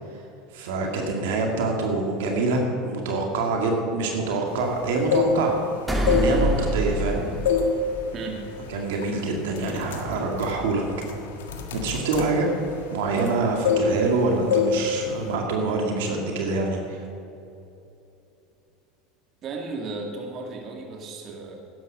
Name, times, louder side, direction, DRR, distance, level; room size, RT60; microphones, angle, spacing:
voice 1, 0.5-5.6 6.0-7.2 8.7-10.8 11.7-12.5 12.9-17.0, right 3 dB, 80° right, 1 dB, 2.1 m, -25 dB
sound 1, 4.9-5.7 6.0-7.1 7.5-7.8 8.2-8.4 9.0-9.2 9.5-13.4 13.6-14.2 14.5-14.8 15.1-15.3, left 6 dB, 85° left, 1.5 m, -25 dB
sound 2, 5.9-8.4, right 1 dB, 5° right, 2.0 m, -26 dB
voice 2, 8.1-8.4 19.4-21.5, right 3 dB, 45° right, 2 dB, 2.3 m, -34 dB
12.5 x 10.0 x 6.4 m, 2.8 s
supercardioid pair, 100°, 0 cm